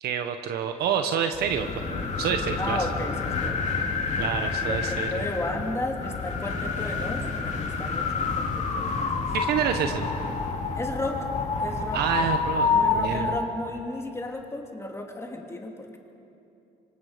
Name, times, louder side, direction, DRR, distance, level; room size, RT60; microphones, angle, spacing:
voice 1, 0.0-2.8 4.2-5.2 9.3-10.1 11.9-13.3, right 8 dB, 70° right, 6 dB, 1.2 m, -28 dB
sound 1, 1.3-13.5, left 4 dB, 45° left, 2.6 m, -28 dB
voice 2, 2.6-3.6 4.7-9.3 9.7-9.9 10.7-11.3 11.6-12.3 12.7-16.0, left 2 dB, 15° left, 1 dB, 2.8 m, -34 dB
25.5 x 25.0 x 5.2 m, 2.8 s
cardioid pair, 110°, 17 cm